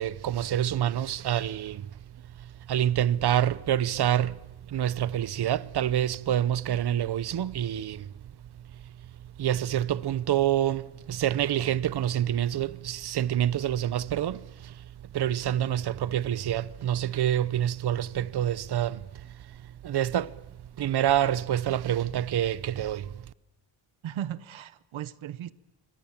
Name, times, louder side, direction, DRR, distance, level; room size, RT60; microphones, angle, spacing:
voice 1, 0.0-1.9 2.7-4.4 4.7-8.1 9.4-14.8 15.1-19.3 19.8-20.3 20.8-23.1, right 11 dB, 55° right, 0.8 m, -27 dB
voice 2, 24.0-25.5, right 11 dB, 90° right, 1.0 m, -36 dB
26.5 x 25.5 x 7.3 m
wide cardioid pair, 165°, 46 cm